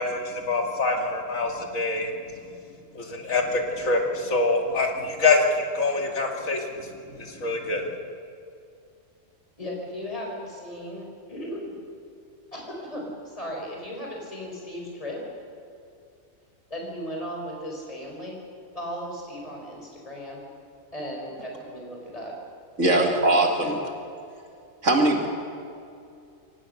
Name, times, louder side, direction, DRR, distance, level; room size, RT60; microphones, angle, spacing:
voice 1, 0.0-2.1 2.9-6.6 7.1-7.8, left 3 dB, 75° left, 2.7 m, -25 dB
voice 2, 9.6-11.7 12.5-15.2 16.7-18.3 18.7-20.4 20.9-22.3 22.8-23.7, equal, 25° left, 4.4 m, -36 dB
voice 3, 22.8-23.8 24.8-25.3, right 2 dB, 60° right, 2.5 m, -20 dB
24.0 x 18.0 x 6.5 m
omnidirectional pair, 1.4 m